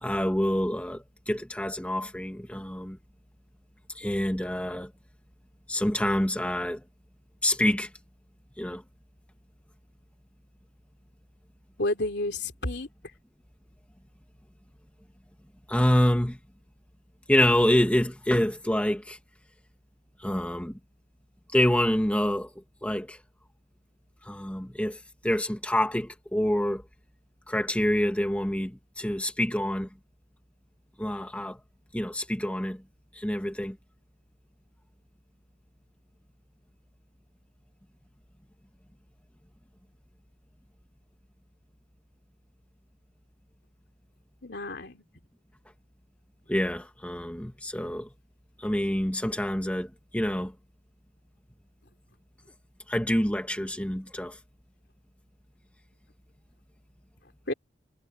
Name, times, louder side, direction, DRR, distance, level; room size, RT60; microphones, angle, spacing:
voice 1, 0.0-3.0 3.9-4.9 5.7-6.8 7.4-7.9 8.6-8.8 15.7-16.4 17.3-19.2 20.2-20.8 21.5-22.5 22.8-23.2 24.2-26.8 27.5-29.9 31.0-31.6 31.9-32.8 33.1-33.8 46.5-48.1 48.6-50.5 52.9-54.4, left 1 dB, 5° left, 1.6 m, -27 dB
voice 2, 11.8-12.9 44.4-45.0 57.5-57.6, left 2 dB, 65° left, 3.5 m, -30 dB
head